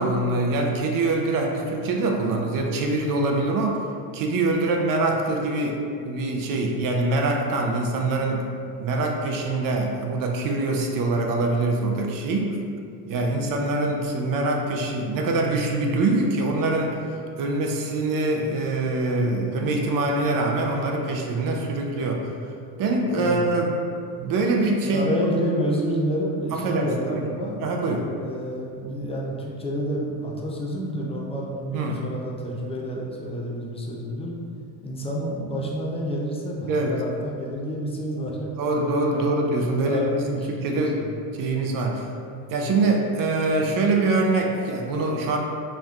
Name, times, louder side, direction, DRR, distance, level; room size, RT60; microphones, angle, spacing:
voice 1, 0.0-3.8 4.1-5.8 6.0-8.5 8.8-12.6 13.1-16.9 17.4-22.2 22.8-23.7 24.2-25.1 26.5-27.2 27.6-28.0 31.7-32.0 36.7-37.0 38.6-41.0 41.4-42.1 42.5-45.4, right 2 dB, 45° right, 1 dB, 0.6 m, -24 dB
voice 2, 24.8-27.6 28.1-34.4 34.8-38.5 39.1-41.1, equal, 15° left, -3 dB, 0.4 m, -29 dB
4.5 x 3.5 x 2.3 m, 2.4 s
supercardioid pair, 110°, 48 cm